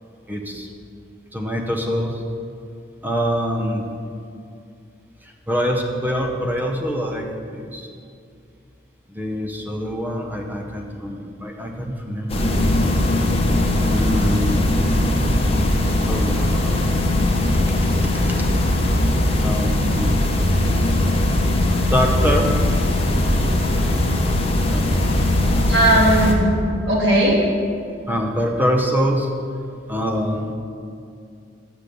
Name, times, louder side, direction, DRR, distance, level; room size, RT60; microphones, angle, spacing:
voice 1, 0.3-0.7 1.3-2.2 3.0-4.0 5.2-7.9 9.1-12.9 13.9-14.7 16.1-17.0 17.8-18.5 19.4-20.1 21.9-22.5 24.7-24.9 28.1-29.3 29.9-30.5, equal, 10° right, 1 dB, 0.8 m, -25 dB
sound 1, 12.3-26.3, left 1 dB, 30° left, 1.0 m, -19 dB
voice 2, 25.5-26.5 26.8-27.4, right 1 dB, 75° right, -5 dB, 2.7 m, -17 dB
6.8 x 6.8 x 7.8 m, 2.4 s
head